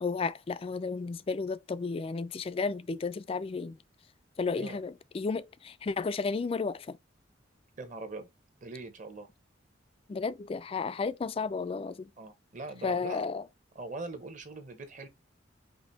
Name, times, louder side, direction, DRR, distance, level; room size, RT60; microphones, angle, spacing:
voice 1, 0.0-3.8 4.4-7.0 10.1-12.1 12.8-13.4, left 4 dB, 30° left, 0.3 m, -33 dB
voice 2, 7.8-8.3 8.6-9.3 12.2-13.2 13.7-15.1, right 2 dB, 40° right, 1.0 m, -41 dB
5.1 x 2.6 x 4.0 m
head